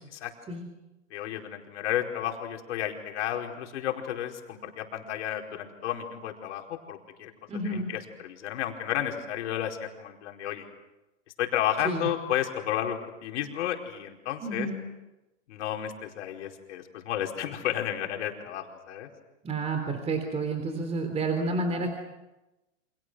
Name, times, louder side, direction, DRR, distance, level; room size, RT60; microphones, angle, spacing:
voice 1, 1.1-7.3 7.6-10.7 11.4-14.7 15.5-19.1, left 11 dB, 60° left, 2 dB, 4.9 m, -32 dB
voice 2, 7.5-7.9 11.8-12.1 14.4-14.8 19.4-21.9, right 3 dB, 15° right, 5 dB, 3.5 m, -30 dB
29.5 x 27.0 x 6.4 m, 1.0 s
hypercardioid pair, 125°, 39 cm